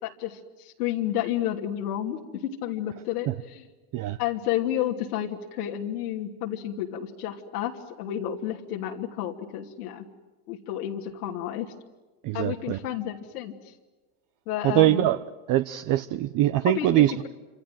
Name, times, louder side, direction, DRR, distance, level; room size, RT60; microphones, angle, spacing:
voice 1, 0.0-3.7 4.2-10.1 10.5-11.7 12.3-13.7 14.5-15.1 16.6-17.3, left 11 dB, 85° left, 0 dB, 3.0 m, -31 dB
voice 2, 12.2-12.8 14.6-15.2 15.5-17.3, right 14 dB, 45° right, 11 dB, 1.0 m, -23 dB
27.5 x 26.5 x 7.8 m, 1.2 s
supercardioid pair, 120°, 44 cm